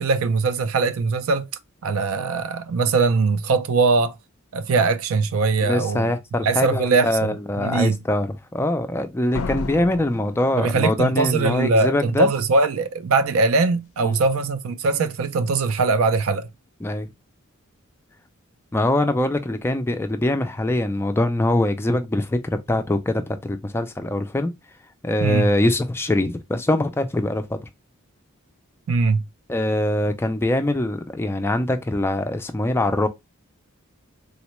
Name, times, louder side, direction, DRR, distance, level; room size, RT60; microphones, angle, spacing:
voice 1, 0.0-1.5 1.8-4.2 4.5-6.1 6.4-8.0 10.6-16.5 25.2-25.5 28.9-29.2, right 3 dB, 75° right, 0.4 m, -21 dB
voice 2, 5.6-12.3 14.0-14.2 16.8-17.1 18.7-22.4 22.7-24.5 25.0-27.7 29.5-33.1, left 1 dB, 10° left, 0.3 m, -23 dB
Slam, 9.3-11.2, left 4 dB, 85° left, 0.4 m, -32 dB
3.7 x 2.1 x 2.9 m
head